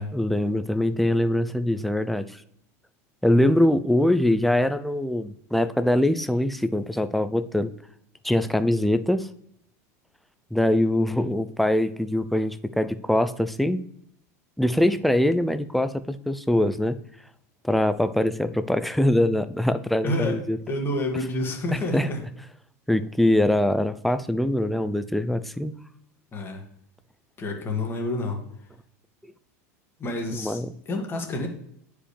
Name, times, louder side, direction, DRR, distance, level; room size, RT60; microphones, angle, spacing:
voice 1, 0.1-2.3 3.2-7.7 8.2-9.3 10.5-13.8 14.6-17.0 17.6-20.6 21.9-22.1 22.9-25.7 30.3-30.7, left 1 dB, ahead, 12 dB, 0.4 m, -23 dB
voice 2, 20.0-22.2 26.3-26.6 27.4-28.4 30.0-31.5, left 1 dB, 25° left, 2 dB, 1.8 m, -29 dB
9.9 x 5.0 x 3.3 m, 0.72 s
supercardioid pair, 120°, 9 cm